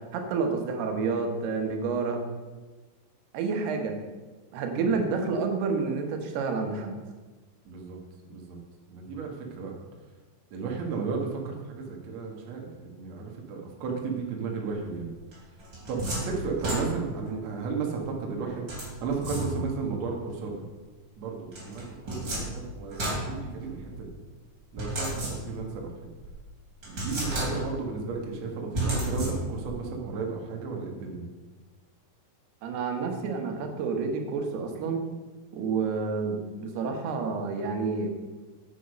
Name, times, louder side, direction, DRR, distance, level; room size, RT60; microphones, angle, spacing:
voice 1, 0.1-2.2 3.3-4.0 4.5-7.0 32.6-35.0 35.5-38.1, right 4 dB, 90° right, 4 dB, 3.3 m, -29 dB
voice 2, 7.7-8.0 8.3-8.6 8.9-9.8 10.5-15.1 15.9-20.6 21.2-24.2 24.7-25.9 26.9-31.2, right 5 dB, 55° right, 1 dB, 2.3 m, -34 dB
sound 1, 15.3-17.3 18.7-19.9 21.5-24.0 24.8-25.8 26.2-26.3 26.8-27.9 28.7-29.7, right 1 dB, 30° right, 3.5 m, -32 dB
9.7 x 8.4 x 5.2 m, 1.3 s
omnidirectional pair, 4.5 m